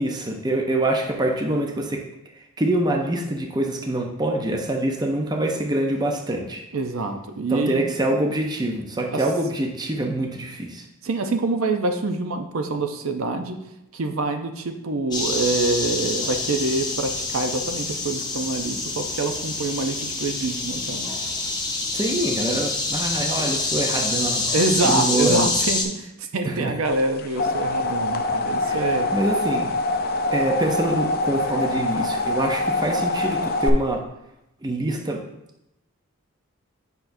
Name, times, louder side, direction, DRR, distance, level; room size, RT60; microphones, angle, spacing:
voice 1, 0.0-2.1 2.4-6.6 7.5-10.9 21.9-24.6 24.8-25.5 26.4-26.8 28.6-29.7 30.3-34.0 34.6-35.2, right 1 dB, 20° right, 2 dB, 0.6 m, -25 dB
voice 2, 6.7-7.9 9.1-9.2 11.0-13.6 13.9-21.1 24.5-29.1, right 2 dB, 75° right, 6 dB, 0.6 m, -26 dB
sound 1, 15.1-25.8, left 3 dB, 20° left, 0.8 m, -26 dB
sound 2, 27.0-33.7, left 2 dB, 45° left, 0.5 m, -24 dB
8.1 x 5.7 x 2.6 m, 0.88 s
head